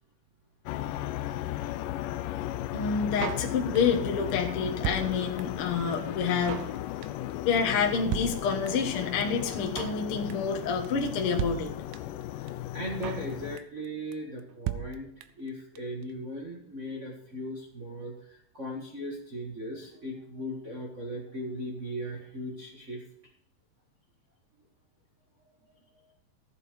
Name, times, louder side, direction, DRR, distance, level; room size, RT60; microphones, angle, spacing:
sound 1, 0.7-13.6, left 13 dB, 80° left, 2.1 m, -36 dB
voice 1, 2.7-6.6 7.4-11.7, left 6 dB, 55° left, 2 dB, 1.7 m, -28 dB
Drum kit, 3.2-4.0 4.3-4.4 4.6-5.7 5.9-6.0 6.2-6.8 7.0-7.3 7.6-7.7 7.8-7.9 8.1-8.9 9.2-9.3 9.5-10.0 10.3-10.6 10.8-10.9 11.1-11.2 11.4-12.2 12.5-12.6 12.8-13.3 13.6-13.9 14.1-14.2 14.4-14.5 14.7-15.5 15.8-15.9 16.0-16.1, right 13 dB, 80° right, 2.2 m, -35 dB
voice 2, 12.3-15.1 15.4-23.0, equal, 50° right, -2 dB, 0.9 m, -38 dB
14.5 x 8.3 x 5.2 m, 0.70 s
omnidirectional pair, 4.1 m